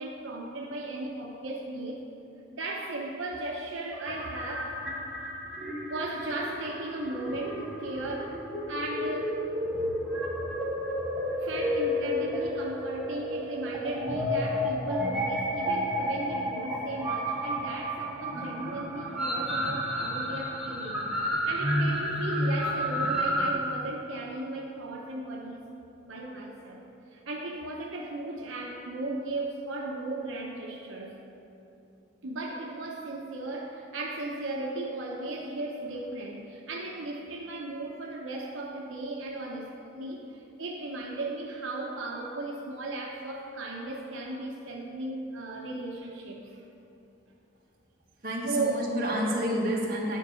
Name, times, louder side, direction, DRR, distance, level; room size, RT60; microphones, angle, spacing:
voice 1, 0.0-2.0 2.5-5.0 5.9-8.4 8.7-9.5 11.3-21.1 21.4-25.7 26.0-26.8 27.1-31.2 32.2-46.6 48.4-49.0, right 2 dB, 85° right, -1 dB, 0.8 m, -36 dB
sound 1, 4.0-23.5, equal, 5° right, 1.1 m, -31 dB
voice 2, 48.2-50.2, equal, 50° right, -3 dB, 1.6 m, -29 dB
10.0 x 4.6 x 6.3 m, 2.8 s
head